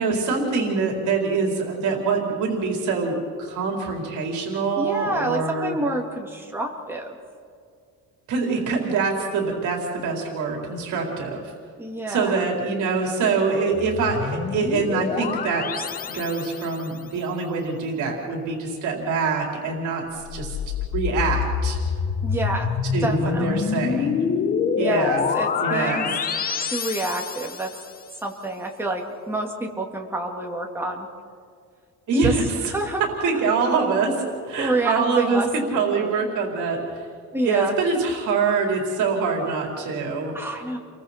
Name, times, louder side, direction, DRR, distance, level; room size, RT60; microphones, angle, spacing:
voice 1, 0.0-5.8 8.3-11.5 12.1-20.6 20.9-21.8 22.9-24.2 24.8-25.3 25.5-26.1 32.1-32.4 33.2-36.8 37.4-40.3, right 4 dB, 60° right, 0 dB, 4.4 m, -24 dB
voice 2, 4.8-7.2 11.8-12.4 22.2-22.7 23.0-23.7 24.7-26.2 26.6-27.7 28.2-31.1 32.2-32.3 32.7-33.0 33.3-33.5 34.6-35.5 35.7-36.2 37.3-37.7 40.3-40.8, right 2 dB, 5° right, 0 dB, 2.3 m, -28 dB
sound 1, 13.7-16.9 20.2-27.9, left 6 dB, 25° left, 0.8 m, -26 dB
30.0 x 23.5 x 4.5 m, 2.2 s
cardioid pair, 165°, 33 cm